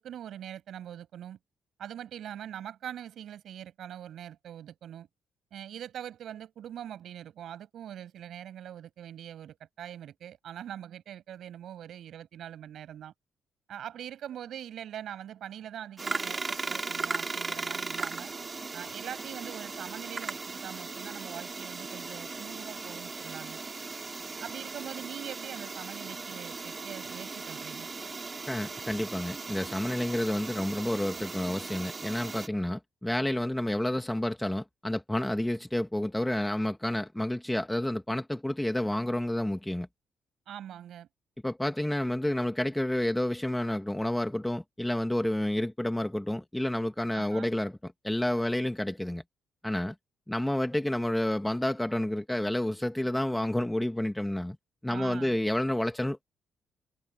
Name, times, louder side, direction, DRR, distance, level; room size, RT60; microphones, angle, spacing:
voice 1, 0.0-1.4 1.8-5.1 5.5-13.1 13.7-18.3 18.7-23.6 24.4-27.9 40.5-41.1 47.1-47.5 54.9-55.4, right 10 dB, 70° right, 6.6 m, -43 dB
sound 1, 16.0-32.5, right 4 dB, 30° right, 3.3 m, -38 dB
voice 2, 28.5-39.9 41.4-49.2 49.6-49.9 50.3-54.6 54.8-56.2, left 1 dB, 5° left, 1.6 m, -30 dB
cardioid pair, 100°, 0 cm